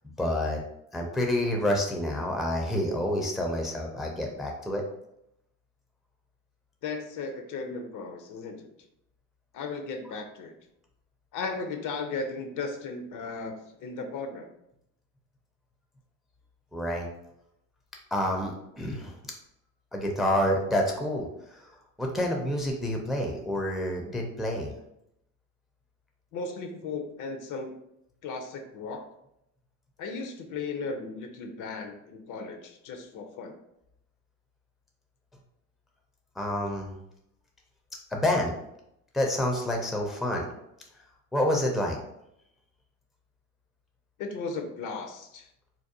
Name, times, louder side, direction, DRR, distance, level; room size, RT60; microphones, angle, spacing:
voice 1, 0.2-0.6 0.9-4.8 16.7-17.1 18.1-19.2 19.9-21.6 22.0-24.7 36.4-36.9 38.1-38.5 39.1-40.5 41.3-42.0, left 1 dB, ahead, 1 dB, 0.4 m, -28 dB
voice 2, 6.8-8.7 9.5-10.6 11.3-14.5 26.3-27.7 28.2-29.1 30.0-33.5 44.2-45.5, left 4 dB, 60° left, 6 dB, 0.5 m, -36 dB
2.5 x 2.0 x 2.7 m, 0.80 s
supercardioid pair, 90°, 35 cm